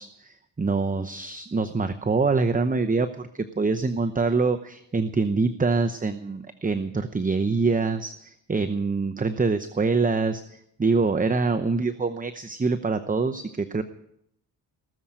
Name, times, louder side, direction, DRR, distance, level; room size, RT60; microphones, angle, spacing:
voice 1, 0.0-13.8, right 4 dB, 20° right, 8 dB, 0.8 m, -25 dB
18.5 x 7.2 x 8.9 m, 0.74 s
cardioid pair, 85°, 45 cm